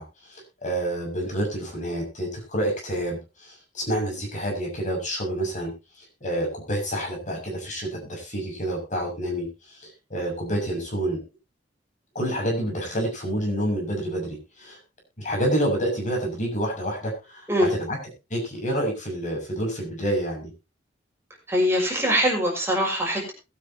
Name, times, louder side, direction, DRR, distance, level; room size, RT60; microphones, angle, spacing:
voice 1, 0.0-11.2 12.1-14.8 15.2-18.0 18.3-20.5, right 1 dB, 45° left, 1 dB, 6.5 m, -28 dB
voice 2, 21.5-23.3, equal, 15° right, -1 dB, 5.8 m, -22 dB
21.0 x 9.1 x 2.9 m, 0.27 s
head